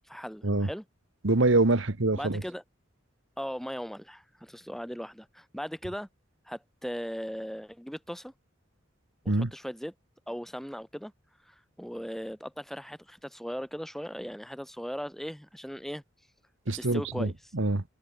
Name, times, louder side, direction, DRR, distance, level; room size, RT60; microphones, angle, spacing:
voice 1, 0.1-0.8 2.1-2.6 3.4-6.1 6.5-8.3 9.3-9.9 10.3-11.1 11.5-16.0 16.7-17.3, equal, ahead, 3.3 m, -38 dB
voice 2, 1.2-2.4 9.3-9.5 16.7-17.8, right 2 dB, 75° right, 1.4 m, -25 dB
head